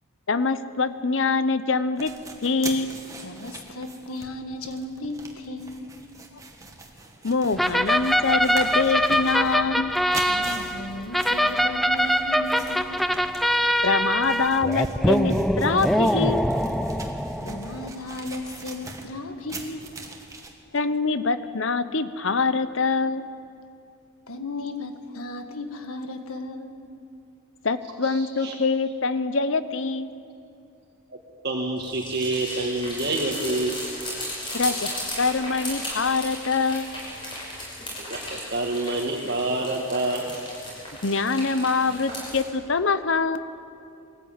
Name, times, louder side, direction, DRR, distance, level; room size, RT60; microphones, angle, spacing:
voice 1, 0.3-2.1 2.4-2.9 7.2-9.9 13.8-16.4 20.7-23.3 27.6-30.1 34.5-36.9 41.0-43.4, left 4 dB, 60° left, 12 dB, 0.8 m, -24 dB
sound 1, 2.0-20.5, right 3 dB, 15° right, 1.7 m, -42 dB
voice 2, 3.2-5.9 9.8-10.0 10.3-13.0 17.2-19.8 24.3-26.7, left 2 dB, 85° left, 7 dB, 1.7 m, -35 dB
sound 2, 7.6-17.9, equal, ahead, 0.4 m, -23 dB
voice 3, 28.0-28.5 31.1-31.2 31.4-33.8 38.0-40.4, right 2 dB, 50° right, -1 dB, 1.6 m, -27 dB
sound 3, 31.8-42.4, left 1 dB, 25° left, 6.3 m, -36 dB
21.0 x 14.5 x 8.8 m, 2.5 s
head